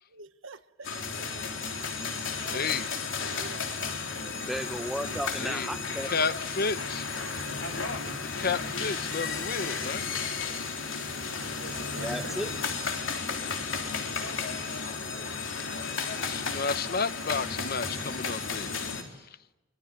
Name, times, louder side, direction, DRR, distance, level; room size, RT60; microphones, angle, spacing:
voice 1, 0.1-0.9 1.2-1.3 2.5-2.8 3.2-3.9 11.6-12.4, right 3 dB, 65° right, 1.3 m, -45 dB
sound 1, 0.8-19.0, left 5 dB, 60° left, 3.8 m, -33 dB
voice 2, 2.5-2.9 5.4-5.7 6.1-7.1 8.0-10.0 16.3-18.7, left 4 dB, 45° left, 0.9 m, -31 dB
voice 3, 4.4-6.1 12.0-12.5, equal, ahead, 1.0 m, -34 dB
25.0 x 24.5 x 9.3 m
head